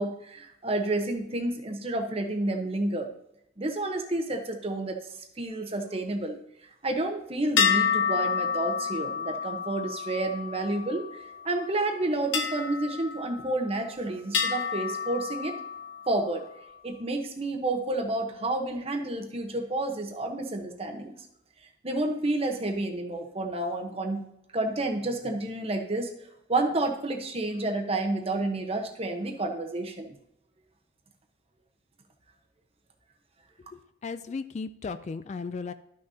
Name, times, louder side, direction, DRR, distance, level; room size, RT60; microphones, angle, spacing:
voice 1, 0.0-3.1 3.6-5.0 5.4-6.4 6.8-11.1 11.4-15.5 16.1-16.4 16.8-21.1 21.8-24.2 24.5-26.1 26.5-30.1, right 2 dB, 35° right, 4 dB, 1.0 m, -30 dB
sound 1, 7.6-11.2 12.3-13.9 14.3-16.0, left 7 dB, 80° left, 0.9 m, -29 dB
voice 2, 33.7-35.7, left 4 dB, 40° left, 13 dB, 0.3 m, -36 dB
12.5 x 6.2 x 2.8 m, 0.78 s
head